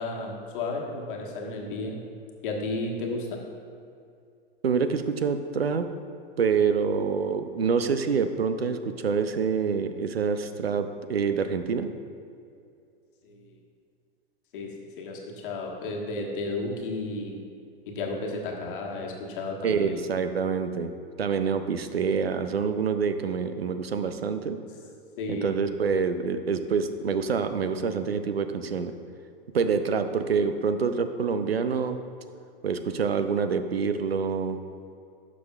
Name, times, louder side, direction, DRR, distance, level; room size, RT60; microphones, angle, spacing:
voice 1, 0.0-2.0 2.4-3.4 13.2-13.5 14.5-17.4 17.9-20.0 25.2-25.5, left 2 dB, 60° left, 0 dB, 1.4 m, -33 dB
voice 2, 4.6-5.8 6.4-11.9 19.6-20.9 21.2-24.6 25.3-28.9 29.5-32.0 32.6-34.6, right 5 dB, 90° right, 9 dB, 0.5 m, -26 dB
11.5 x 6.1 x 2.3 m, 2.4 s
figure-of-eight pair, 100°, 30 cm